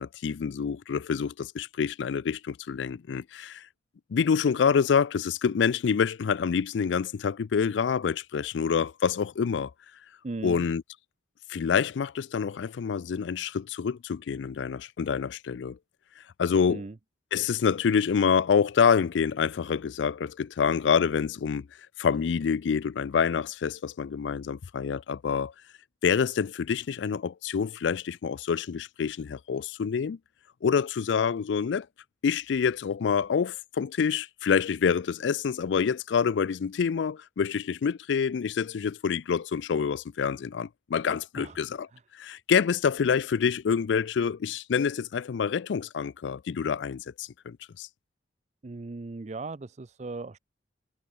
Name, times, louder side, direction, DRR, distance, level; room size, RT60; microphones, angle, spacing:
voice 1, 0.0-3.7 4.1-9.7 10.4-10.8 11.5-15.8 16.2-16.8 17.3-21.7 22.0-25.5 26.0-30.2 30.6-31.9 32.2-41.9 42.1-47.9, left 6 dB, 90° left, 0.4 m, -27 dB
voice 2, 10.2-10.6 16.7-16.9 41.4-41.5 41.9-42.0 48.6-50.4, right 3 dB, 40° right, 0.5 m, -37 dB
head